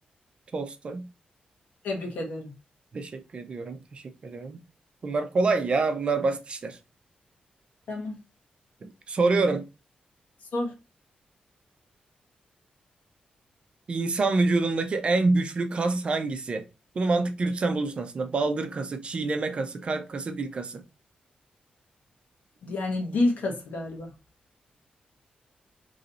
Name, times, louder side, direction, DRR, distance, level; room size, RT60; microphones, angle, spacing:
voice 1, 0.5-1.0 2.9-4.6 5.0-6.8 8.8-9.7 13.9-16.6 16.9-20.8, right 3 dB, 40° right, 0.5 m, -27 dB
voice 2, 1.8-2.5 7.9-8.2 10.5-10.7 22.6-24.1, left 2 dB, 80° left, 1.3 m, -29 dB
3.1 x 2.6 x 4.0 m
wide cardioid pair, 150°, 3 cm